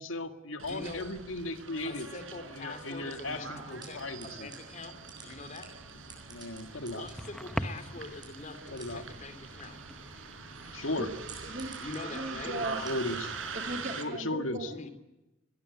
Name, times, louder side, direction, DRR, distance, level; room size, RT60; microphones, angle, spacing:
voice 1, 0.0-2.1 2.5-4.5 6.3-7.1 8.7-9.0 10.7-11.1 12.4-13.3 14.0-14.7, left 2 dB, 85° left, 8 dB, 2.1 m, -36 dB
Bus, 0.6-14.0, right 4 dB, 80° right, 5.1 m, -43 dB
voice 2, 0.7-1.0 1.8-4.9 5.2-5.7 6.9-9.8 11.8-12.5 14.6-14.9, left 3 dB, 40° left, 10 dB, 3.0 m, -44 dB
sound 1, 3.7-13.8, right 4 dB, 20° right, 7.9 m, -54 dB
sound 2, 5.7-13.8, equal, ahead, 1.1 m, -45 dB
voice 3, 11.0-12.8 13.5-14.7, right 1 dB, 40° right, 6 dB, 2.7 m, -39 dB
22.5 x 21.5 x 9.6 m, 0.97 s
head